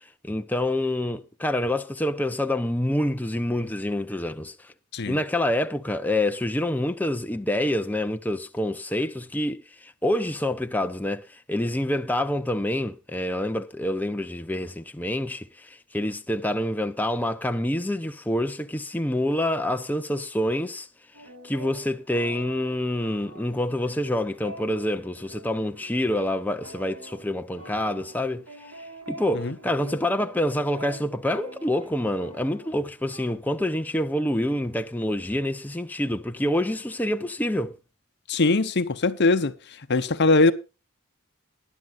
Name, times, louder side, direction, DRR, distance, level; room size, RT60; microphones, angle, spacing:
voice 1, 0.2-4.5 5.0-20.9 21.4-28.4 29.1-37.8, left 1 dB, 10° left, 0.6 m, -27 dB
sound 1, 21.1-33.3, right 2 dB, 70° right, 4.1 m, -44 dB
voice 2, 38.3-39.5 39.9-40.5, left 3 dB, 50° left, 0.9 m, -21 dB
19.5 x 11.0 x 2.5 m
head